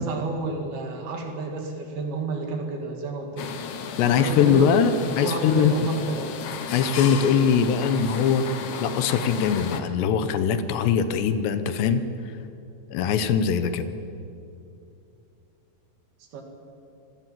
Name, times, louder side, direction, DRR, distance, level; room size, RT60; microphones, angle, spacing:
voice 1, 0.0-3.5 4.0-6.4 16.2-16.4, right 3 dB, 60° right, 3 dB, 4.3 m, -31 dB
sound 1, 3.4-9.8, left 6 dB, 65° left, 2.0 m, -34 dB
voice 2, 4.0-5.7 6.7-12.0 12.9-13.9, left 7 dB, 80° left, 11 dB, 3.2 m, -22 dB
27.0 x 19.5 x 7.7 m, 2.6 s
omnidirectional pair, 5.0 m